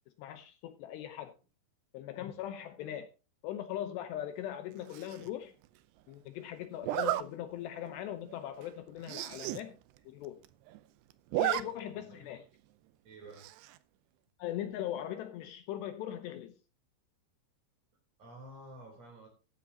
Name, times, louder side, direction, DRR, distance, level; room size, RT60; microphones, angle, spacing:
voice 1, 0.2-1.3 1.9-3.1 3.4-5.5 6.1-9.8 10.1-10.4 11.4-12.4 14.4-16.5, left 11 dB, 75° left, 2.8 m, -40 dB
Zipper (clothing), 4.9-5.3 6.8-7.2 7.8-8.0 8.3-8.4 8.6-8.7 9.0-9.6 10.0-10.1 10.3-10.8 11.1-11.6 12.0-12.1 13.4-13.8, right 14 dB, 80° right, 2.5 m, -33 dB
voice 2, 11.3-12.4 13.0-13.5 18.2-19.3, right 1 dB, 40° right, 4.2 m, -52 dB
14.0 x 9.7 x 2.8 m
omnidirectional pair, 5.4 m